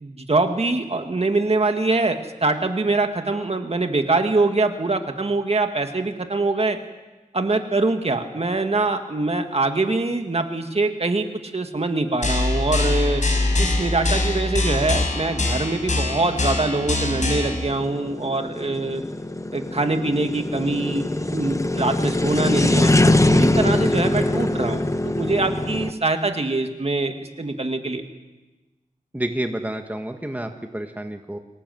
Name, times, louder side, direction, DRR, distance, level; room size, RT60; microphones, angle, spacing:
voice 1, 0.0-6.8 7.3-13.2 13.6-19.0 19.5-21.1 21.3-28.0, right 2 dB, 45° right, 6 dB, 1.9 m, -23 dB
sound 1, 12.2-17.6, left 2 dB, 60° left, 5.6 m, -23 dB
sound 2, 13.4-25.9, left 1 dB, 20° left, 1.0 m, -23 dB
voice 2, 29.1-31.4, right 1 dB, 10° right, 5 dB, 1.5 m, -29 dB
25.0 x 18.0 x 7.8 m, 1.1 s
wide cardioid pair, 85°, 14 cm